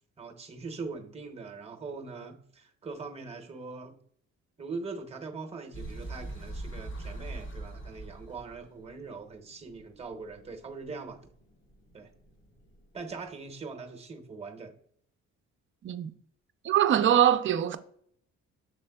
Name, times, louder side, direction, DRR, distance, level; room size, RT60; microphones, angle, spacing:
voice 1, 0.2-3.9 4.6-11.2 11.9-12.1 12.9-14.8, right 4 dB, 20° right, 0.8 m, -41 dB
sound 1, 5.7-13.1, right 2 dB, 40° left, 0.9 m, -43 dB
voice 2, 16.6-17.8, right 10 dB, 40° right, 0.4 m, -23 dB
6.5 x 3.4 x 2.2 m
cardioid pair, 90°, 30 cm